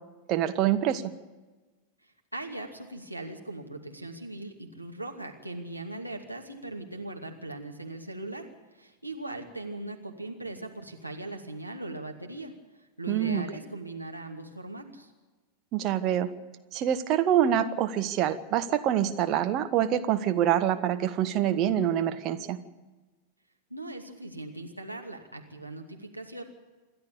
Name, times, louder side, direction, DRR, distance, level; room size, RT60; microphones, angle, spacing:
voice 1, 0.3-1.1 13.1-13.4 15.7-16.3 16.7-22.6, right 10 dB, 35° right, 9 dB, 1.4 m, -26 dB
voice 2, 2.3-8.5 8.7-12.5 13.0-15.1 23.7-26.4, right 2 dB, 90° right, 2 dB, 2.5 m, -39 dB
27.5 x 11.5 x 8.6 m, 1.2 s
figure-of-eight pair, 90°, 0 cm